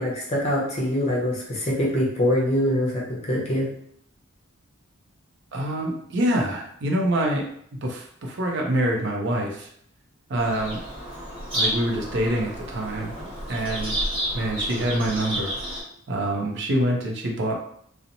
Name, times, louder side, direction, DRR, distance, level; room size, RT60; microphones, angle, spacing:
voice 1, 0.0-3.7, left 1 dB, 30° left, -4 dB, 0.7 m, -24 dB
voice 2, 5.5-7.5 7.8-9.7 10.3-10.8 11.5-13.1 13.5-14.0 14.3-15.5 16.1-17.5, right 1 dB, 55° right, 1 dB, 0.5 m, -25 dB
Bird vocalization bird call bird song, 10.4-15.8, equal, 25° right, 1.1 m, -30 dB
2.8 x 2.0 x 2.5 m, 0.68 s
head